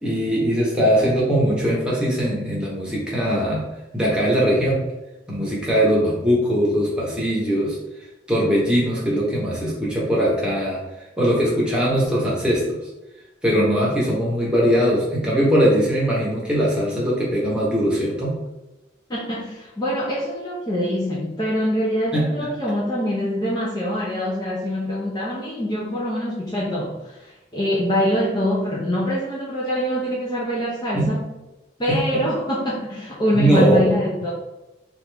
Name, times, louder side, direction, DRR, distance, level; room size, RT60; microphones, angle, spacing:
voice 1, 0.0-3.7 3.9-4.8 5.3-7.8 8.3-10.8 11.2-12.8 13.4-18.4 22.1-22.5 30.9-31.1 31.9-32.0 33.3-33.8, equal, 5° right, -5 dB, 0.8 m, -20 dB
voice 2, 19.1-31.2 31.8-34.3, equal, 25° left, -6 dB, 0.5 m, -24 dB
3.1 x 2.4 x 3.3 m, 1.0 s
head